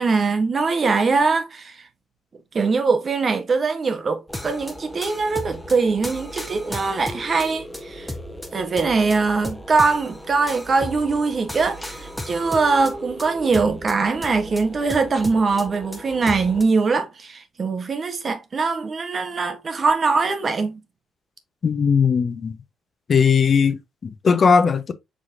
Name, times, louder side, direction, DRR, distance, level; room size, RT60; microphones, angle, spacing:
voice 1, 0.0-1.9 2.5-8.1 8.5-20.8, right 4 dB, 40° right, 0.7 m, -22 dB
sound 1, 4.3-16.6, equal, 5° left, 0.9 m, -35 dB
voice 2, 21.6-22.6 23.1-24.9, left 6 dB, 45° left, 0.7 m, -18 dB
4.8 x 4.1 x 2.4 m
cardioid pair, 90°, 0 cm